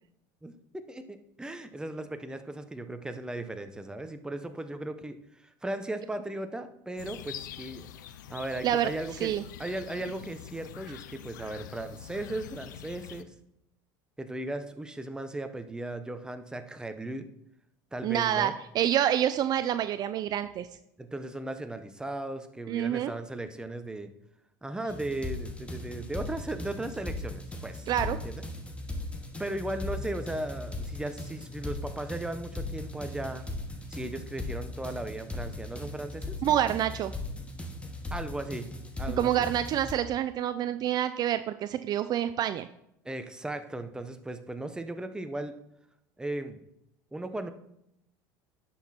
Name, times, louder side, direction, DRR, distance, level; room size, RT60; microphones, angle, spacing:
voice 1, 0.4-7.9 8.3-9.3 9.6-13.3 14.2-17.3 17.9-18.6 21.0-24.1 24.6-28.4 29.4-33.4 33.9-36.6 38.1-38.7 39.0-39.5 43.0-45.5 46.2-46.6 47.1-47.5, right 1 dB, 10° right, 9 dB, 0.9 m, -37 dB
sound 1, 7.0-13.2, left 10 dB, 90° left, 0.5 m, -45 dB
voice 2, 18.0-20.7 22.7-23.1 27.9-28.2 36.4-37.1 39.2-42.7, right 11 dB, 45° right, 12 dB, 0.4 m, -27 dB
sound 2, 24.9-39.9, left 2 dB, 10° left, 1.4 m, -38 dB
10.0 x 6.0 x 4.3 m, 0.79 s
supercardioid pair, 95°, 10 cm